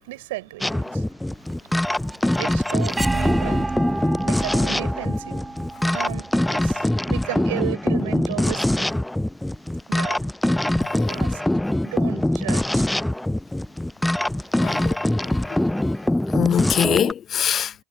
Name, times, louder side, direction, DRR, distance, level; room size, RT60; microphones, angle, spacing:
voice 1, 0.0-1.1 2.4-5.5 5.9-8.9 9.9-10.2 11.1-11.4 11.8-12.9, right 19 dB, 75° right, 5.0 m, -34 dB
sound 1, 0.6-17.1, left 1 dB, 5° left, 0.4 m, -23 dB
sound 2, 1.5-7.4, right 2 dB, 15° right, 5.0 m, -31 dB
voice 2, 10.8-11.1 14.6-15.0 15.2-15.3 16.3-17.7, left 9 dB, 45° left, 0.8 m, -23 dB
hypercardioid pair, 75°, 0 cm